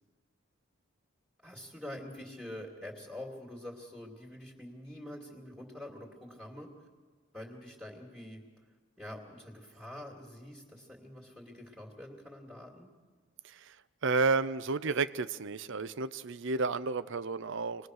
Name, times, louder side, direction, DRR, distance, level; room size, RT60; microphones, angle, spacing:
voice 1, 1.4-6.7 7.3-8.4 9.0-12.9, left 1 dB, 5° right, -3 dB, 2.5 m, -46 dB
voice 2, 14.0-17.9, right 4 dB, 60° right, 14 dB, 0.6 m, -31 dB
27.0 x 20.0 x 6.5 m, 1.5 s
head